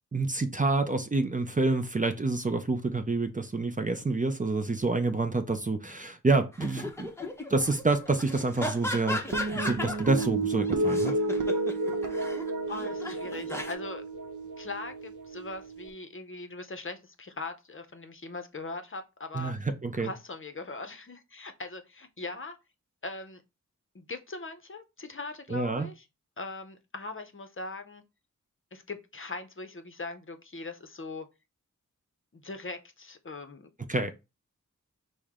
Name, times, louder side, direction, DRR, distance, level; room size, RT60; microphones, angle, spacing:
voice 1, 0.1-7.1 7.5-9.2 9.5-11.1 19.3-20.1 25.5-25.9 33.9-34.1, right 3 dB, 25° right, 0.5 m, -28 dB
sound 1, 6.5-10.3 10.7-13.7, left 1 dB, 10° left, 0.8 m, -36 dB
sound 2, 9.3-15.9, right 2 dB, 70° right, 0.7 m, -31 dB
voice 2, 12.7-14.0 14.6-19.5 20.0-22.6 23.0-23.4 23.9-26.0 26.4-28.0 28.7-31.3 32.3-33.7, left 3 dB, 40° left, 0.7 m, -40 dB
6.3 x 2.1 x 3.6 m
wide cardioid pair, 90°, 31 cm